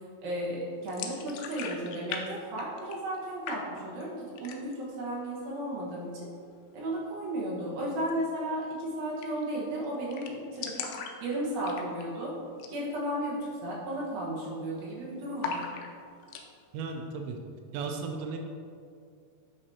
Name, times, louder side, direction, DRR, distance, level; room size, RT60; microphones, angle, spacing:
voice 1, 0.2-6.1 6.7-10.7 11.2-12.3 12.7-15.7, right 1 dB, 65° right, -5 dB, 2.8 m, -34 dB
sound 1, 0.9-2.2 2.5-3.2 3.5-4.0 4.4-4.9 5.2-5.3 5.6-6.3 8.0-8.1 8.4-8.5 8.8-8.9 9.2-9.6 9.8-9.9 10.1-12.2 12.5-12.8 13.1-13.2 13.8-14.1 14.3-14.9 15.4-16.5, left 6 dB, 80° left, 2.3 m, -39 dB
voice 2, 16.7-17.4 17.7-18.4, right 4 dB, 85° right, 3 dB, 2.8 m, -35 dB
8.6 x 6.0 x 2.7 m, 2.3 s
omnidirectional pair, 4.9 m